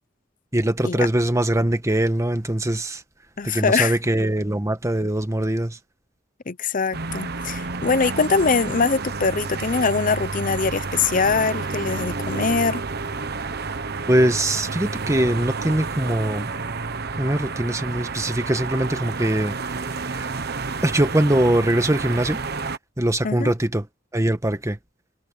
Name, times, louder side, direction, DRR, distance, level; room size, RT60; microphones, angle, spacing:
voice 1, 0.5-3.0 3.4-5.8 14.1-16.5 17.2-20.3 20.8-22.4 23.0-23.9 24.1-24.8, right 1 dB, 15° right, 1.4 m, -22 dB
voice 2, 3.4-4.0 6.5-12.8 23.2-23.5, left 4 dB, 45° left, 0.8 m, -22 dB
sound 1, 6.9-22.8, right 4 dB, 55° right, 1.2 m, -30 dB
head